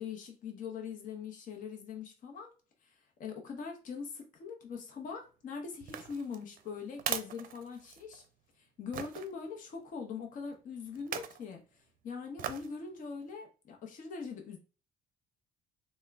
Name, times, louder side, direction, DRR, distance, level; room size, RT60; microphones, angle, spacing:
voice 1, 0.0-2.5 2.8-8.2 8.6-14.6, left 5 dB, 55° left, 2 dB, 0.8 m, -42 dB
sound 1, 5.8-8.3 8.9-9.3 11.0-11.4 12.4-12.8 13.2-13.3, right 10 dB, 60° right, 0.5 m, -39 dB
3.5 x 2.2 x 3.3 m, 0.34 s
cardioid pair, 120°, 17 cm